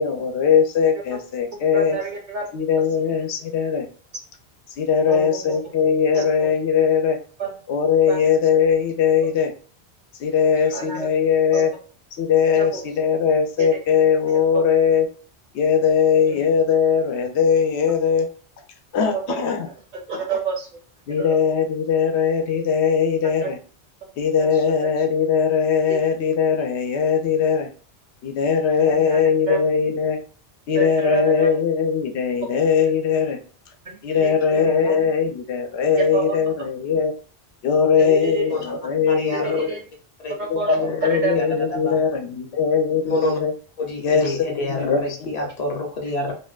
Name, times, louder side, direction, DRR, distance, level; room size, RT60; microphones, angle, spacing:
voice 1, 0.0-2.0 2.5-3.9 4.8-7.2 7.7-9.5 10.2-11.7 12.2-15.1 15.5-18.3 18.9-19.7 21.1-23.6 24.2-27.7 28.2-30.2 30.7-33.4 34.0-37.1 37.6-39.7 40.5-43.5 44.0-45.3, left 6 dB, 85° left, 4 dB, 0.9 m, -20 dB
voice 2, 1.7-2.4 3.0-3.1 5.1-5.6 6.1-6.5 7.4-7.5 8.1-8.2 10.7-11.1 11.5-11.6 12.6-12.8 13.6-13.7 14.3-14.4 16.3-16.5 19.1-19.5 20.1-20.7 21.2-21.4 23.4-23.5 24.4-24.6 28.8-29.2 29.5-29.6 30.7-31.5 33.9-35.0 36.0-36.4 38.0-38.5 39.3-39.8 40.4-41.3, right 4 dB, 55° right, 1 dB, 0.6 m, -28 dB
voice 3, 39.1-39.6 40.2-40.3 41.4-41.5 41.7-41.9 43.0-43.4 43.8-46.3, left 2 dB, 45° left, 1 dB, 0.6 m, -27 dB
2.6 x 2.1 x 2.3 m, 0.40 s
omnidirectional pair, 1.1 m